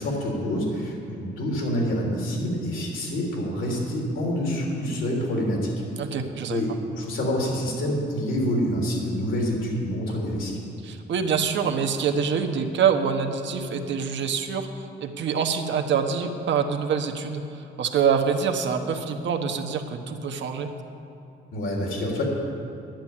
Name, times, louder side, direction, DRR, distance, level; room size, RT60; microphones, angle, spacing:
voice 1, 0.0-5.7 6.5-10.5 21.5-22.2, equal, 80° left, -2 dB, 3.5 m, -27 dB
voice 2, 6.0-6.6 10.8-20.7, right 6 dB, 65° right, 5 dB, 1.1 m, -25 dB
10.5 x 9.2 x 7.4 m, 2.7 s
cardioid pair, 90°, 20 cm